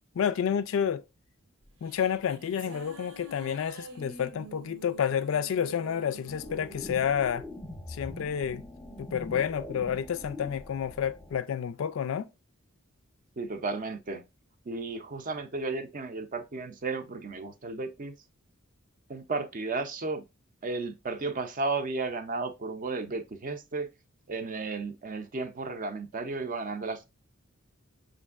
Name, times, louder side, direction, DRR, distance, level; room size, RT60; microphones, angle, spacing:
voice 1, 0.2-1.0 1.8-7.4 7.9-8.6 9.0-12.3, left 8 dB, 65° left, 0.3 m, -29 dB
sound 1, 1.6-8.2, right 3 dB, 85° right, 0.8 m, -48 dB
sound 2, 6.3-11.4, left 1 dB, 10° left, 0.6 m, -43 dB
voice 2, 13.4-14.2 14.7-18.1 19.1-20.2 20.6-23.9 24.3-27.0, right 3 dB, 40° right, 0.5 m, -34 dB
6.2 x 2.5 x 2.4 m
head